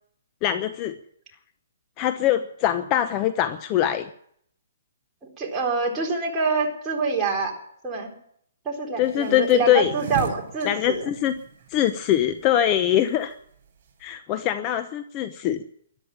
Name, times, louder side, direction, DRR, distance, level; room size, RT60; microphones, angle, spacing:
voice 1, 0.4-0.9 2.0-4.1 9.0-9.9 10.6-11.3 11.7-13.3 14.0-15.6, left 11 dB, 25° left, 11 dB, 0.8 m, -22 dB
voice 2, 5.4-7.5 7.8-8.1 8.6-11.0, right 4 dB, 15° right, -2 dB, 4.0 m, -26 dB
sound 1, 9.0-14.1, right 5 dB, 45° right, 7.2 m, -38 dB
14.0 x 12.0 x 8.7 m, 0.68 s
hypercardioid pair, 155°, 0 cm